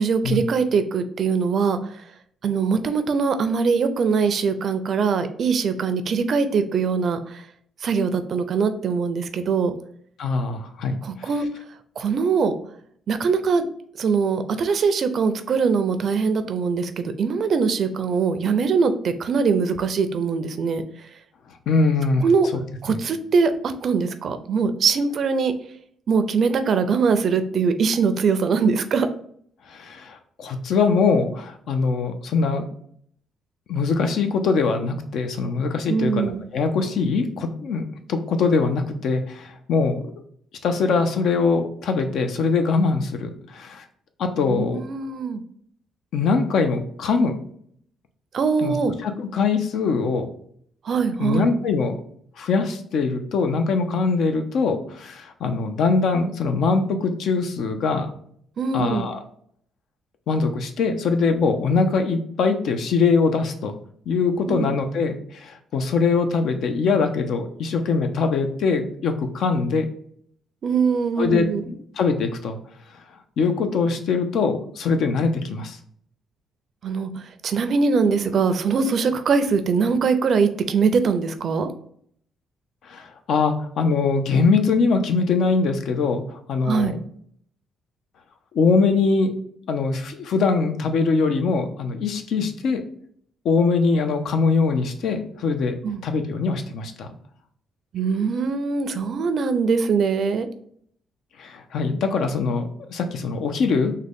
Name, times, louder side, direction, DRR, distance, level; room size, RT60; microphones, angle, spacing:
voice 1, 0.0-2.0 2.4-7.4 7.8-9.7 11.0-11.5 12.0-12.5 13.1-13.7 14.0-20.8 22.2-22.5 22.8-23.5 23.8-25.5 26.1-29.1 35.9-36.4 44.5-45.4 48.3-48.9 50.8-51.5 58.6-59.1 64.5-64.7 70.6-71.6 76.8-81.7 86.7-87.0 95.8-96.0 97.9-100.5, right 5 dB, 55° right, 10 dB, 0.4 m, -22 dB
voice 2, 10.2-11.3 21.7-22.2 22.5-22.6 22.9-23.0 29.7-32.6 33.7-37.8 38.1-40.0 40.6-43.8 44.2-44.8 46.1-47.4 48.6-48.8 49.0-50.3 51.2-52.0 52.4-58.1 58.7-59.2 60.3-63.7 64.1-69.9 71.2-72.6 73.4-75.8 82.8-86.9 88.5-89.3 89.7-92.8 93.4-95.8 96.0-97.1 101.4-103.9, left 4 dB, 70° left, 7 dB, 0.5 m, -22 dB
3.7 x 2.2 x 3.5 m, 0.63 s
cardioid pair, 100°, 0 cm